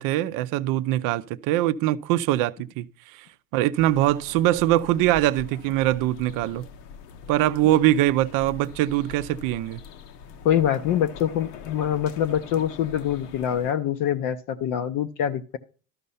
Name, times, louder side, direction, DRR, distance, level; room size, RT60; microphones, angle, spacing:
voice 1, 0.0-3.3 3.5-6.7 7.3-9.8, right 14 dB, 45° right, 0.6 m, -23 dB
sound 1, 3.8-13.7, left 7 dB, 70° left, 1.2 m, -43 dB
voice 2, 10.4-15.6, left 10 dB, 40° left, 0.7 m, -25 dB
13.0 x 5.3 x 5.5 m
supercardioid pair, 125°, 48 cm